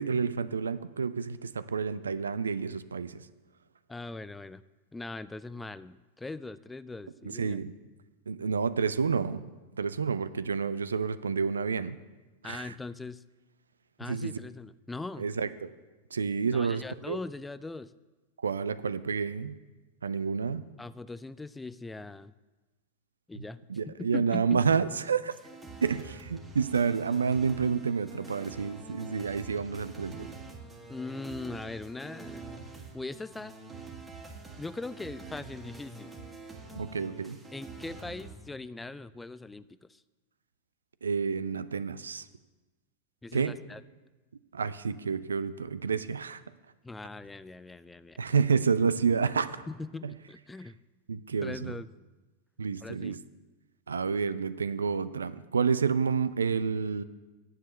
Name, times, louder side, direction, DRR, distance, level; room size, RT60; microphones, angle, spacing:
voice 1, 0.0-3.3 7.2-7.7 8.3-9.4 9.8-12.0 12.4-12.7 14.1-14.3 15.2-15.7 16.1-17.2 18.4-19.6 20.0-20.7 23.4-23.5 23.7-25.3 25.8-30.3 36.7-37.4 41.0-42.3 43.3-43.6 44.5-46.4 48.2-49.6 50.0-50.1 51.1-51.7 52.6-53.2 53.9-57.0, right 5 dB, 70° right, 15 dB, 0.4 m, -29 dB
voice 2, 3.9-4.6 4.9-7.6 12.4-13.2 14.0-15.3 16.5-17.9 20.8-22.3 23.3-24.6 30.9-32.4 32.9-33.5 34.6-36.2 37.5-40.0 43.2-43.8 46.8-48.2 49.7-50.8 51.4-51.9 52.8-53.2, left 3 dB, 10° left, 16 dB, 0.3 m, -40 dB
sound 1, 25.3-38.4, right 3 dB, 10° right, 1.8 m, -46 dB
10.0 x 7.4 x 6.7 m, 1.2 s
figure-of-eight pair, 90°, 0 cm